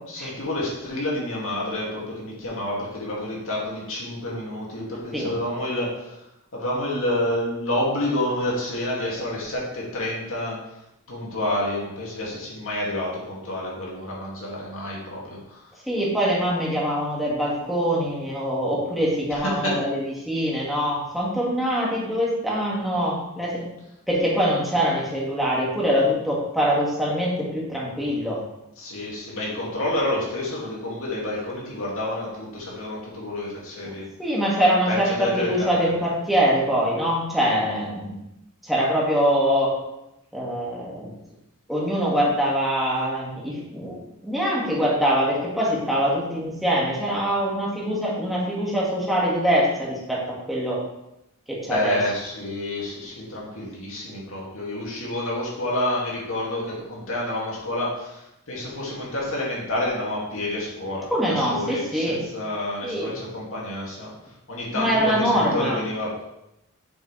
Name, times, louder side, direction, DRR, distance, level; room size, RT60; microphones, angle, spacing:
voice 1, 0.1-6.2 6.5-10.6 11.1-15.6 19.3-19.8 28.8-34.1 34.9-35.8 51.7-64.1 64.5-66.2, left 1 dB, 65° left, -4 dB, 2.4 m, -29 dB
voice 2, 15.9-23.7 24.1-28.4 33.8-38.2 38.6-39.7 40.3-41.1 41.7-44.0 44.2-50.8 51.5-52.0 61.1-62.2 62.8-63.2 64.7-65.8, equal, ahead, -6 dB, 2.1 m, -24 dB
7.5 x 6.5 x 3.4 m, 0.89 s
head